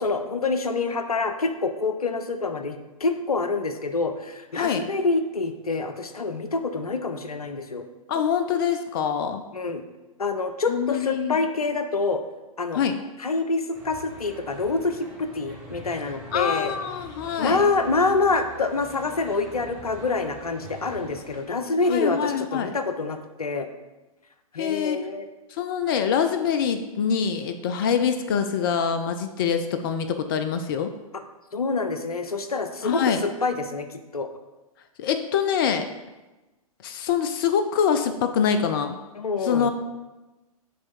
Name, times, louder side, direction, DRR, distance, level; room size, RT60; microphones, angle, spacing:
voice 1, 0.0-7.9 9.5-9.8 10.2-12.2 12.6-12.8 13.2-16.7 17.4-23.7 24.5-25.3 31.5-34.3 39.2-39.7, left 3 dB, 75° left, 8 dB, 0.6 m, -26 dB
voice 2, 4.5-4.9 8.1-9.4 10.7-11.4 12.7-13.0 16.3-17.6 21.9-22.7 24.6-25.0 25.5-30.9 32.8-33.2 35.0-35.9 36.8-39.0 39.4-39.7, left 7 dB, 35° left, 8 dB, 0.4 m, -25 dB
sound 1, 13.7-21.4, right 1 dB, 5° right, 1.5 m, -44 dB
7.5 x 3.3 x 4.4 m, 1.1 s
figure-of-eight pair, 110°, 19 cm